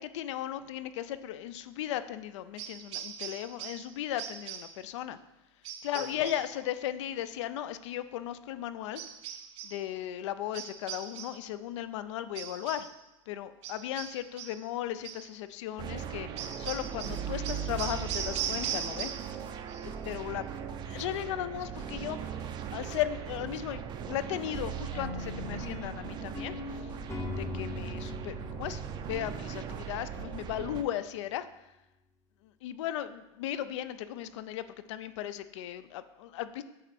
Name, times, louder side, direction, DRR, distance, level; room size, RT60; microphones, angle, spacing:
voice 1, 0.0-5.2 5.8-9.0 9.6-12.9 13.3-19.1 19.5-20.5 20.9-27.0 27.3-31.7 32.4-36.6, left 12 dB, 75° left, 13 dB, 0.4 m, -36 dB
sound 1, 2.6-3.9 4.2-4.8 5.6-6.5 8.9-9.8 10.5-11.5 12.3-13.0 13.6-14.6 15.0-15.3 16.4-19.4 19.7-20.2, right 9 dB, 70° right, 0.6 m, -39 dB
sound 2, 15.8-30.8, right 8 dB, 30° right, 0.4 m, -39 dB
sound 3, 24.9-30.1, left 4 dB, 20° left, 0.6 m, -41 dB
7.8 x 3.1 x 4.1 m, 0.96 s
supercardioid pair, 125°, 16 cm